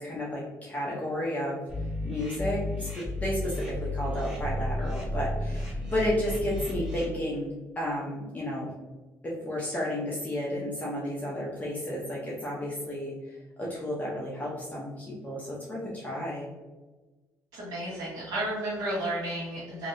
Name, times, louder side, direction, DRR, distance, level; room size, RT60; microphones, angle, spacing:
voice 1, 0.0-1.6 2.0-8.7 9.2-13.1 13.6-16.5, left 1 dB, 25° left, -5 dB, 0.8 m, -32 dB
sound 1, 1.7-7.0, left 1 dB, 10° right, 0.9 m, -33 dB
voice 2, 17.5-19.9, right 1 dB, 85° right, -9 dB, 1.2 m, -32 dB
3.0 x 2.8 x 2.6 m, 1.2 s
cardioid pair, 95°, 6 cm